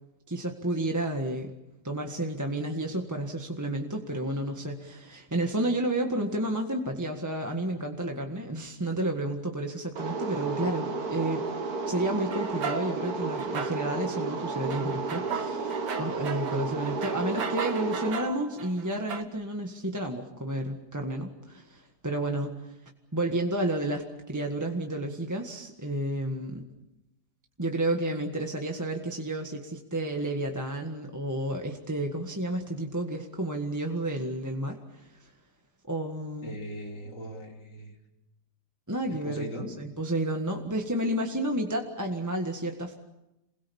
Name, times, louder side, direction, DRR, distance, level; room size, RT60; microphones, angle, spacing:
voice 1, 0.3-1.5 1.8-11.5 11.9-22.7 23.1-26.6 27.6-35.3 35.9-36.5 38.9-42.9, right 1 dB, 10° right, 2 dB, 1.6 m, -31 dB
sound 1, 10.0-18.1, right 4 dB, 65° right, 2.1 m, -32 dB
sound 2, 12.3-14.2 14.5-19.2, right 6 dB, 85° right, 2.1 m, -37 dB
voice 2, 36.4-38.0 39.1-39.7, equal, 85° left, 1 dB, 4.0 m, -39 dB
28.0 x 21.5 x 7.1 m, 0.94 s
omnidirectional pair, 1.8 m